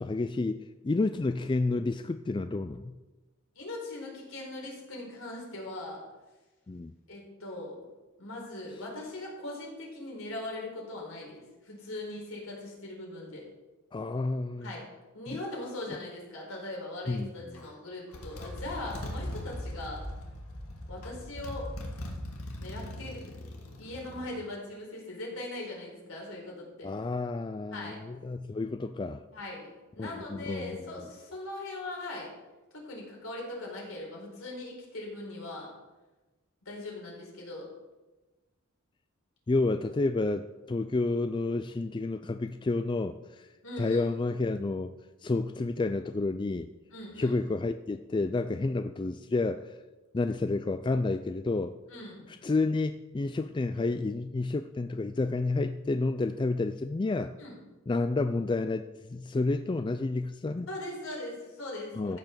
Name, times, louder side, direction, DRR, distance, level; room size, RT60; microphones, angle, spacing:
voice 1, 0.0-2.9 6.7-6.9 13.9-14.7 15.3-15.4 17.1-17.6 26.8-29.2 30.0-31.1 39.5-43.5 43.8-44.9 45.2-46.7 47.2-49.7 50.1-51.7 52.3-57.3 57.9-60.7 62.0-62.2, left 3 dB, 20° left, 10 dB, 0.3 m, -30 dB
voice 2, 3.5-6.0 7.1-7.8 8.2-13.4 14.6-14.8 15.1-20.1 20.9-21.7 22.6-26.9 27.7-28.0 29.3-32.3 32.7-35.7 36.6-37.7 43.6-44.0 46.9-47.3 51.9-52.3 57.4-57.6 60.7-62.2, left 2 dB, 70° left, -2 dB, 4.4 m, -40 dB
Motorcycle, 17.5-17.7 18.1-24.3, left 1 dB, 85° left, 2.1 m, -40 dB
15.0 x 5.9 x 6.7 m, 1.1 s
head